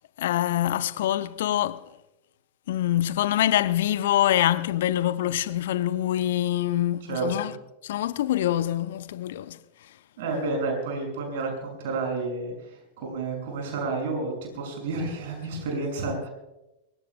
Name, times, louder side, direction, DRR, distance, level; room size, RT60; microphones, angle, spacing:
voice 1, 0.2-1.8 2.7-7.5 7.8-9.6, left 12 dB, 55° left, 0.7 m, -25 dB
voice 2, 7.1-7.5 10.2-16.3, right 3 dB, 55° right, 6.1 m, -30 dB
24.5 x 20.0 x 2.2 m
figure-of-eight pair, 90°, 0 cm